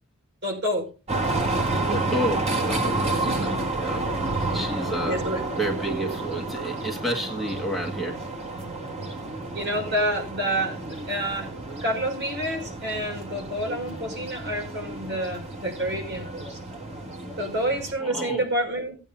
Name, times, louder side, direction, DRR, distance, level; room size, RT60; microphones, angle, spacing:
voice 1, 0.4-0.9 3.2-3.6 5.1-5.4 9.5-11.5 11.8-16.6 17.4-19.0, right 1 dB, 55° right, 1 dB, 5.9 m, -28 dB
sound 1, 1.1-17.9, right 2 dB, 30° right, 2.8 m, -30 dB
voice 2, 1.9-4.0 4.5-5.2 5.6-8.2 18.0-18.4, right 1 dB, ahead, 0 dB, 1.6 m, -30 dB
18.5 x 8.9 x 2.7 m, 0.32 s
head